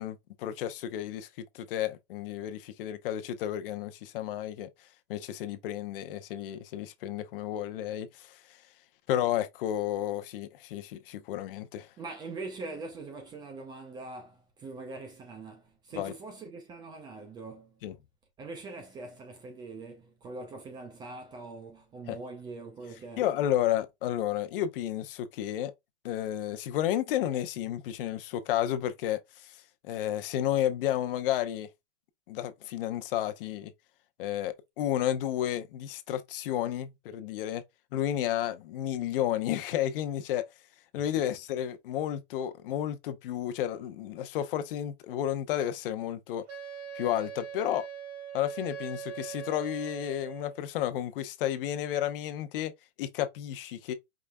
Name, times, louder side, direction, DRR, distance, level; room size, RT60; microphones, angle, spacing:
voice 1, 0.0-4.7 5.1-8.4 9.1-11.9 15.9-16.1 17.8-17.9 22.1-22.2 23.2-25.7 26.0-29.6 29.8-31.7 32.3-33.7 34.2-37.6 37.9-40.4 40.9-46.4 46.9-47.8 48.3-52.7 53.0-53.9, left 11 dB, 55° left, 0.8 m, -32 dB
voice 2, 12.0-17.8 18.4-23.2 41.1-41.2, right 3 dB, 15° right, 0.5 m, -43 dB
Wind instrument woodwind instrument, 46.5-50.6, right 7 dB, 90° right, 2.2 m, -41 dB
5.0 x 3.2 x 2.2 m
supercardioid pair, 160°, 33 cm